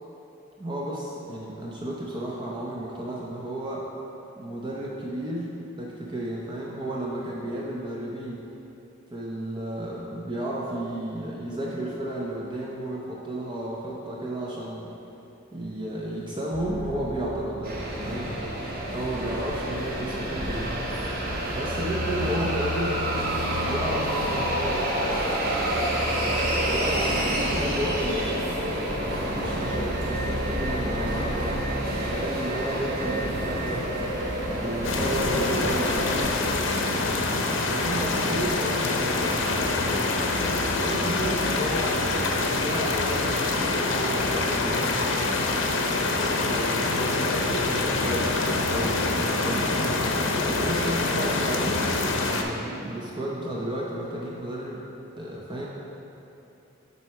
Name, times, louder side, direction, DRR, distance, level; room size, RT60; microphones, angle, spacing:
voice 1, 0.6-3.9 4.4-5.5 5.8-8.4 9.1-14.9 15.5-18.4 18.9-20.7 21.5-23.0 23.5-25.0 25.9-31.3 31.9-33.9 34.5-36.3 37.7-39.7 40.8-42.2 42.5-45.2 46.2-50.0 50.5-51.8 52.4-54.8 55.2-55.7, right 1 dB, 25° right, -4 dB, 0.6 m, -33 dB
sound 1, 16.5-35.2, equal, 75° right, 1.5 m, -36 dB
sound 2, 17.6-36.3, right 1 dB, 50° right, 1.0 m, -28 dB
sound 3, 34.8-52.4, left 2 dB, 70° left, 0.7 m, -25 dB
7.4 x 4.2 x 4.7 m, 3.0 s
head